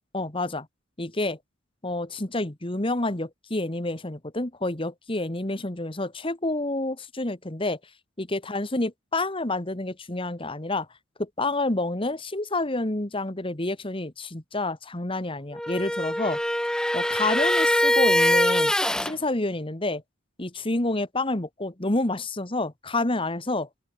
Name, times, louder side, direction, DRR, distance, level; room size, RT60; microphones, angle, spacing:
voice 1, 0.1-0.7 1.0-1.4 1.8-7.8 8.2-10.9 11.2-16.4 16.9-18.7 19.0-20.0 20.4-23.7, left 2 dB, 25° left, 1.7 m, -28 dB
sound 1, 15.5-19.1, left 1 dB, 5° left, 0.9 m, -23 dB
open air
head